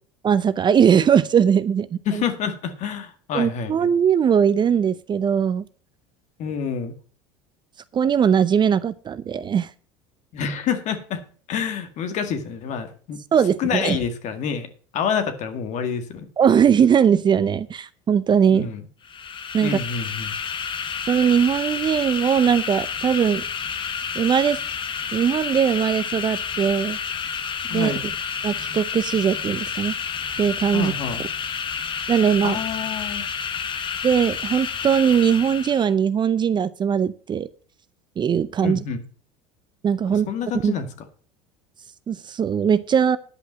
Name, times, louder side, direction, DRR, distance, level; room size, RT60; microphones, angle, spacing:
voice 1, 0.2-2.2 3.3-5.6 7.9-9.7 13.3-14.0 16.4-18.7 19.5-19.8 21.1-23.4 24.2-24.6 25.1-27.0 27.7-27.9 28.4-29.9 30.4-30.9 32.1-32.6 34.0-37.5 38.2-38.8 39.8-40.3 40.6-40.7 42.1-43.2, right 8 dB, 30° right, 15 dB, 0.6 m, -20 dB
voice 2, 2.1-3.7 6.4-6.9 10.3-11.2 11.5-13.2 13.6-14.7 14.9-16.3 18.5-18.8 19.6-20.3 27.7-28.0 30.7-31.2 32.4-33.3 38.6-39.0 40.1-40.9, left 7 dB, 55° left, 9 dB, 1.9 m, -27 dB
sound 1, 19.0-35.9, left 7 dB, 35° left, 1.3 m, -30 dB
10.5 x 5.4 x 7.6 m, 0.42 s
supercardioid pair, 95°, 15 cm